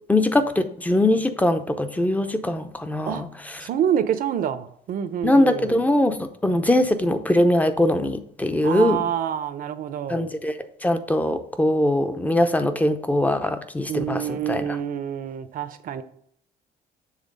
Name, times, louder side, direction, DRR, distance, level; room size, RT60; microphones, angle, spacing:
voice 1, 0.1-3.7 5.2-9.0 10.1-14.7, left 1 dB, 10° left, 0.6 m, -22 dB
voice 2, 3.6-5.8 8.6-10.3 13.9-16.0, right 9 dB, 55° right, 0.7 m, -27 dB
7.4 x 3.3 x 5.3 m
cardioid pair, 110°, 17 cm